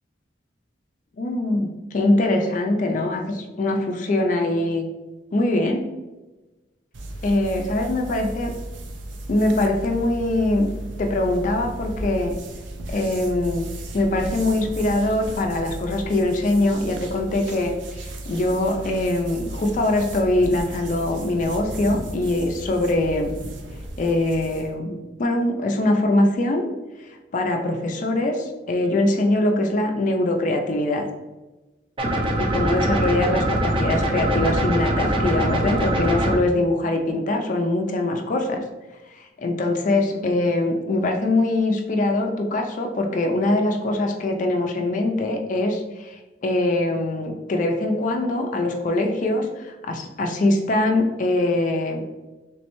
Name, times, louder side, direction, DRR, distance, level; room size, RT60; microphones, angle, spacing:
voice 1, 1.2-4.9 5.3-5.8 7.2-8.5 9.3-10.7 11.0-12.4 12.9-13.7 13.9-23.3 24.0-26.6 27.3-31.0 32.4-38.6 39.4-52.0, left 2 dB, 40° left, 3 dB, 0.4 m, -23 dB
sound 1, 6.9-24.7, right 1 dB, 75° right, 0.5 m, -35 dB
sound 2, 32.0-36.4, right 1 dB, 30° right, 0.4 m, -22 dB
3.4 x 3.1 x 2.9 m, 1.1 s
head